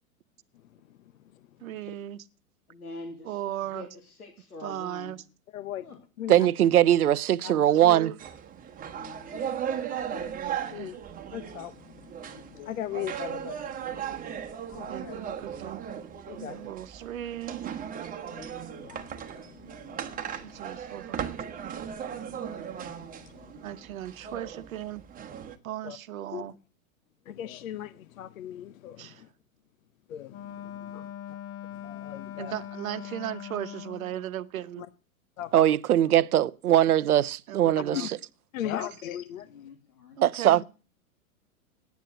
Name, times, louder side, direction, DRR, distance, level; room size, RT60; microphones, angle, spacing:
voice 1, 1.6-2.3 3.3-3.9 4.6-5.2 7.4-8.2 10.6-11.0 13.9-14.0 14.9-15.9 16.4-17.6 20.3-21.3 23.6-25.0 25.6-26.5 29.0-29.2 32.4-34.9 37.5-38.1 40.2-40.6, right 12 dB, 70° right, 1.0 m, -37 dB
voice 2, 2.7-5.2 5.8-6.0 8.8-9.5 36.0-36.3 39.4-40.2, left 2 dB, 85° left, 2.3 m, -45 dB
voice 3, 5.5-5.9 6.2-6.4 7.4-7.5 10.1-11.0 11.3-14.2 14.7-15.2 16.3-16.7 18.3-20.6 22.1-23.7 25.8-26.0 26.3-26.5 27.3-29.3 30.1-31.4 31.7-32.5 34.8-34.9 35.4-35.7 37.9-38.1 38.5-39.5, left 11 dB, 65° left, 0.8 m, -39 dB
voice 4, 6.3-8.1 35.5-38.1 40.2-40.6, right 12 dB, 85° right, 0.6 m, -21 dB
sound 1, 8.2-25.6, right 8 dB, 20° right, 1.2 m, -37 dB
Wind instrument woodwind instrument, 30.3-34.2, left 10 dB, 35° left, 1.0 m, -41 dB
9.4 x 9.2 x 7.6 m
hypercardioid pair, 110°, 43 cm